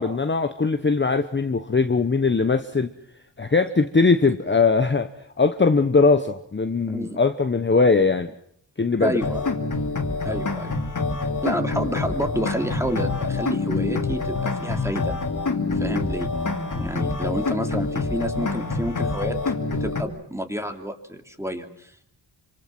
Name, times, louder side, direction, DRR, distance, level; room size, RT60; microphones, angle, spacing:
voice 1, 0.0-2.9 3.4-5.1 5.4-8.3 8.8-9.2 10.3-10.4, left 4 dB, 25° left, 8 dB, 1.1 m, -20 dB
voice 2, 9.0-9.5 10.2-10.7 11.4-15.1 15.7-16.3 16.8-19.4 19.7-21.9, equal, 5° right, 5 dB, 3.0 m, -29 dB
sound 1, 9.2-20.0, left 3 dB, 40° left, 2.9 m, -26 dB
27.0 x 26.0 x 6.1 m, 0.67 s
wide cardioid pair, 95°, 45 cm